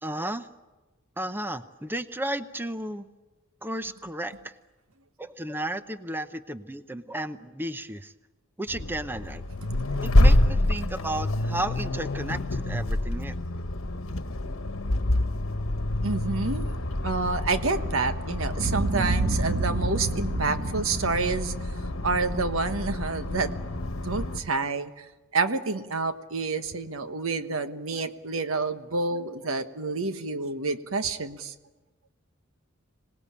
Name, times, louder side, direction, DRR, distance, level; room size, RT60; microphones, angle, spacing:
voice 1, 0.0-0.5 1.2-3.1 3.6-4.4 5.2-8.1 8.6-9.4 10.0-13.3, right 1 dB, 10° right, 11 dB, 0.8 m, -33 dB
Accelerating revving vroom, 8.7-24.4, left 1 dB, 80° left, 1.2 m, -27 dB
voice 2, 16.0-16.7 17.0-21.5 22.0-23.5 24.0-25.0 25.3-31.5, right 4 dB, 85° right, 9 dB, 1.3 m, -28 dB
Boom, 18.6-22.9, right 2 dB, 50° right, 1.1 m, -30 dB
26.0 x 18.5 x 8.6 m, 1.2 s
head